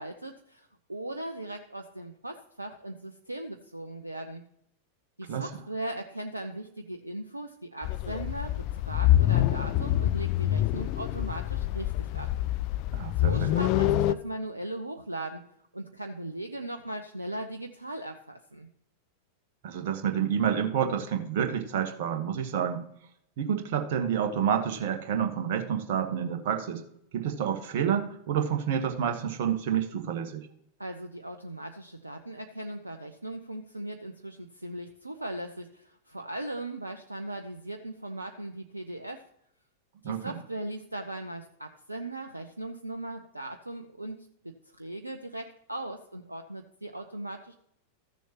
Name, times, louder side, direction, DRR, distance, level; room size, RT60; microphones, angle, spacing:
voice 1, 0.0-4.4 5.2-12.3 13.2-15.4 15.7-18.7 30.8-39.2 40.0-47.5, right 1 dB, 85° right, 6 dB, 0.6 m, -38 dB
sound 1, 7.8-14.1, left 13 dB, 45° left, 0.4 m, -26 dB
voice 2, 12.9-13.5 19.6-22.8 23.4-26.8 27.1-30.5 40.0-40.4, right 8 dB, 50° right, 5 dB, 1.4 m, -29 dB
14.5 x 7.1 x 3.0 m, 0.73 s
figure-of-eight pair, 90°, 0 cm